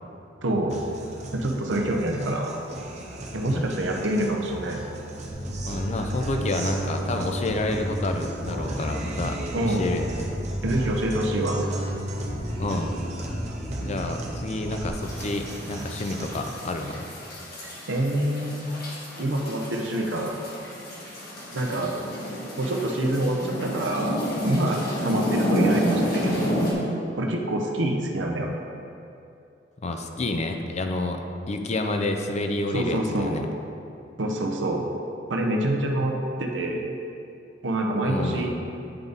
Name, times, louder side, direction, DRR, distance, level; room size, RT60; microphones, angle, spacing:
voice 1, 0.4-0.8 1.3-2.5 3.3-4.8 9.5-9.8 10.6-11.6 17.6-18.7 19.2-20.4 21.5-21.9 22.6-24.1 24.4-26.6 27.2-28.5 32.7-33.3 34.2-34.8 35.3-36.9 37.6-38.5, right 1 dB, 80° right, 1 dB, 0.7 m, -26 dB
Guitar, 0.7-16.7, right 1 dB, 40° right, 0.8 m, -38 dB
Bass guitar, 5.3-14.9, equal, 20° left, 1.3 m, -32 dB
voice 2, 5.5-10.1 12.6-12.9 13.8-17.0 29.8-31.2 31.5-33.5 38.0-38.6, left 2 dB, 35° left, 5 dB, 0.4 m, -29 dB
sound 1, 15.0-26.7, equal, 55° left, 1.4 m, -30 dB
9.0 x 3.5 x 4.0 m, 2.7 s
head